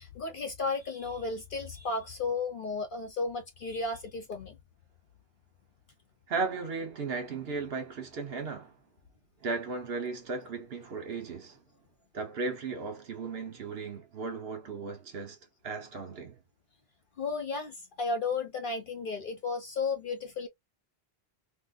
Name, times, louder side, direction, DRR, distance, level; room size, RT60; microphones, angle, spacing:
voice 1, 0.0-4.6 17.2-20.5, left 4 dB, 60° left, 0.7 m, -34 dB
voice 2, 6.3-8.7 9.4-11.6 12.1-15.4 15.6-16.4, right 4 dB, 70° right, 1.1 m, -36 dB
3.9 x 2.2 x 2.3 m
omnidirectional pair, 1.1 m